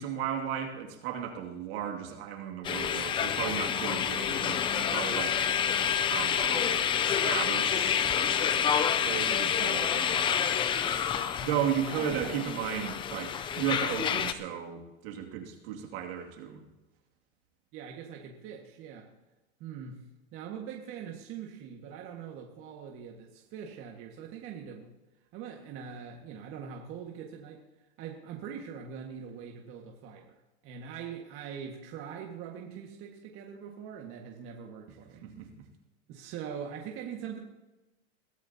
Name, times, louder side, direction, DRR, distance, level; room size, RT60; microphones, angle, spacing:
voice 1, 0.0-5.5 6.1-6.8 7.2-8.7 9.0-10.4 11.4-16.6 35.2-35.7, right 9 dB, 60° right, 2 dB, 2.6 m, -35 dB
sound 1, 2.6-14.3, left 8 dB, 15° left, 0.4 m, -28 dB
voice 2, 12.0-12.4 17.7-19.1 19.6-24.9 25.3-27.6 28.0-30.3 30.6-35.3 36.1-37.4, right 7 dB, 40° right, 0 dB, 1.9 m, -42 dB
22.0 x 13.5 x 2.9 m, 1.0 s
supercardioid pair, 145°, 34 cm